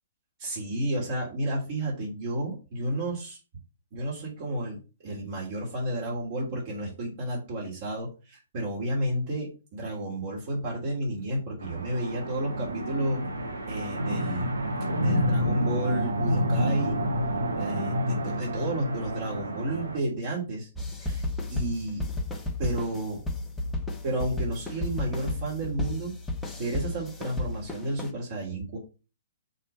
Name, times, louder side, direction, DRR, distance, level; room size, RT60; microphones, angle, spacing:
voice 1, 0.4-3.4 3.9-13.3 13.7-14.6 14.9-17.0 17.5-20.7 21.0-21.2 21.5-22.0 22.6-23.2 24.0-26.1 26.6-28.8, right 1 dB, 45° right, -3 dB, 3.1 m, -31 dB
sound 1, 11.6-20.0, equal, 80° right, 1.9 m, -28 dB
sound 2, 20.7-28.1, left 2 dB, 5° left, 1.1 m, -33 dB
6.3 x 4.2 x 5.5 m, 0.32 s
figure-of-eight pair, 125°, 0 cm